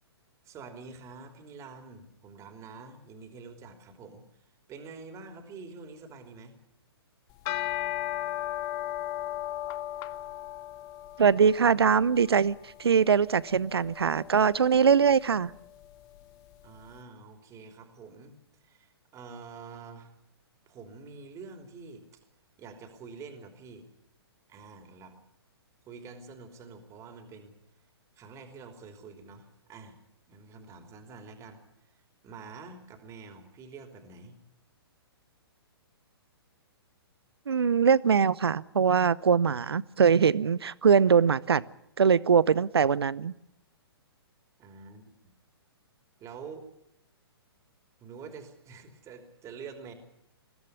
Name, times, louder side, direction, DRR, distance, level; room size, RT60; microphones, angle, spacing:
voice 1, 0.4-6.5 16.6-20.1 20.7-22.2 22.6-23.9 24.5-25.2 25.8-27.6 28.2-30.0 30.3-34.4 44.6-45.3 46.2-46.7 48.0-49.9, right 4 dB, 20° right, 3.3 m, -47 dB
sound 1, 7.3-16.6, left 14 dB, 30° left, 0.9 m, -37 dB
voice 2, 11.2-15.5 37.5-41.6 42.0-43.3, right 6 dB, 75° right, 0.8 m, -22 dB
21.5 x 15.0 x 9.6 m
figure-of-eight pair, 120°, 13 cm